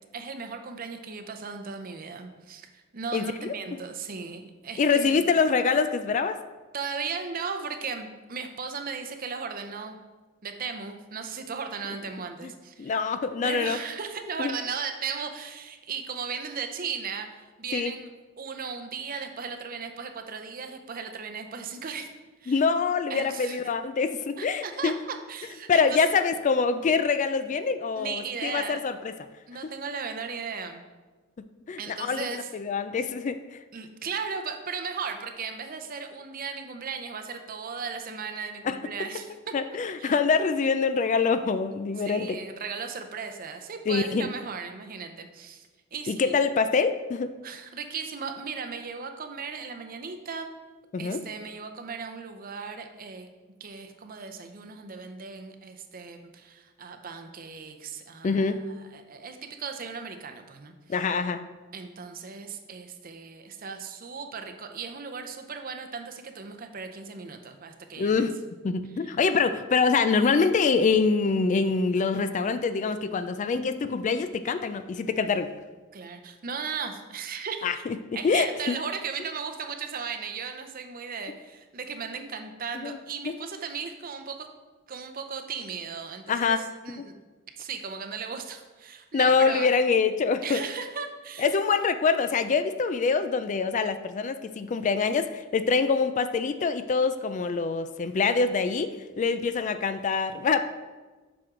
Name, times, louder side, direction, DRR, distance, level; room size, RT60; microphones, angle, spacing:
voice 1, 0.1-5.2 6.7-10.0 10.4-13.0 13.4-18.1 18.4-22.1 22.4-22.7 23.1-23.6 24.4-26.2 28.0-28.8 29.5-30.8 31.8-32.5 33.7-39.5 40.0-40.1 42.0-46.3 47.4-50.5 51.0-53.3 53.6-61.0 61.7-68.3 68.9-69.1 75.9-77.8 78.1-84.5 84.9-87.1 87.6-89.7 90.4-91.5, right 5 dB, 45° right, 6 dB, 0.6 m, -36 dB
voice 2, 3.1-3.5 4.8-6.4 12.8-13.8 14.4-14.6 17.7-17.9 22.5-25.0 25.7-29.1 31.7-32.3 32.5-33.6 38.7-38.8 39.5-42.4 43.9-44.3 46.1-47.3 50.9-51.2 58.2-58.6 60.9-61.4 68.0-68.4 68.6-75.5 77.6-78.0 78.2-78.8 82.7-83.0 83.3-83.4 86.3-86.6 87.0-87.1 89.1-90.6 91.4-100.6, left 5 dB, 35° left, 10 dB, 0.3 m, -25 dB
7.6 x 6.0 x 3.7 m, 1.3 s
head